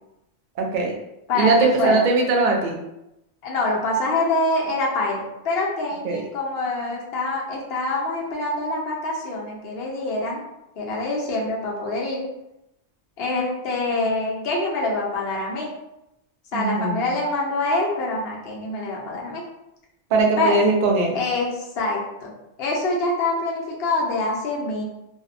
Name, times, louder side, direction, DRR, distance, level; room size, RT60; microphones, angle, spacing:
voice 1, 0.6-0.9 1.3-2.8 6.0-6.2 16.5-17.1 20.1-21.2, right 3 dB, 60° right, 1 dB, 0.6 m, -20 dB
voice 2, 1.3-2.1 3.4-10.4 10.8-12.3 13.2-15.7 16.5-19.4 20.4-20.6 21.1-22.3 22.6-24.8, left 2 dB, 65° left, -2 dB, 0.8 m, -25 dB
2.6 x 2.1 x 2.5 m, 0.88 s
omnidirectional pair, 1.2 m